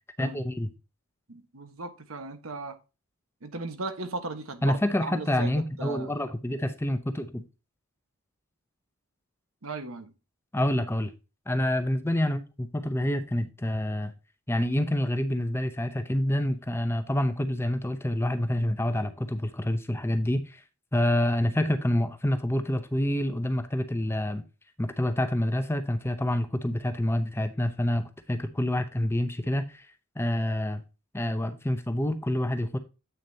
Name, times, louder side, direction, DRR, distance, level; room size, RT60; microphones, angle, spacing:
voice 1, 0.2-0.7 4.6-7.4 10.5-11.1 11.5-14.1 14.5-20.6 20.9-24.4 24.8-29.9 30.2-30.8 31.1-32.8, left 1 dB, 10° left, 0.6 m, -27 dB
voice 2, 1.3-2.8 3.4-5.5 5.8-6.1 9.6-10.1, right 3 dB, 70° right, 1.3 m, -37 dB
8.4 x 6.4 x 2.8 m
head